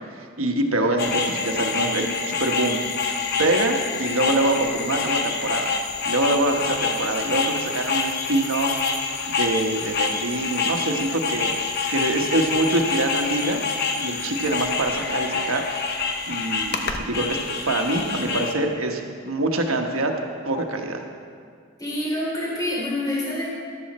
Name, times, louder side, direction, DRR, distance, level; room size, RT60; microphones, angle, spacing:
voice 1, 0.1-2.8 3.4-5.7 6.0-8.8 9.3-11.5 11.9-13.6 14.0-15.6 16.3-20.1 20.4-21.0, right 2 dB, 85° right, 3 dB, 1.4 m, -25 dB
sound 1, 1.0-18.5, left 5 dB, 55° left, 1.0 m, -27 dB
voice 2, 21.8-23.5, left 1 dB, 20° left, -6 dB, 3.4 m, -26 dB
13.5 x 12.5 x 4.3 m, 2.2 s
head